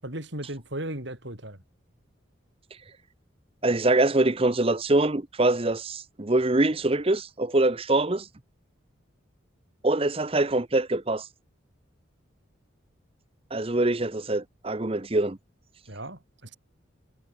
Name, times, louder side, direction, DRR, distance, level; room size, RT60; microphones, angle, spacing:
voice 1, 0.0-1.6 15.9-16.2, right 1 dB, 65° right, 7.1 m, -35 dB
voice 2, 3.6-8.3 9.8-11.3 13.5-15.4, right 2 dB, 30° right, 0.8 m, -24 dB
head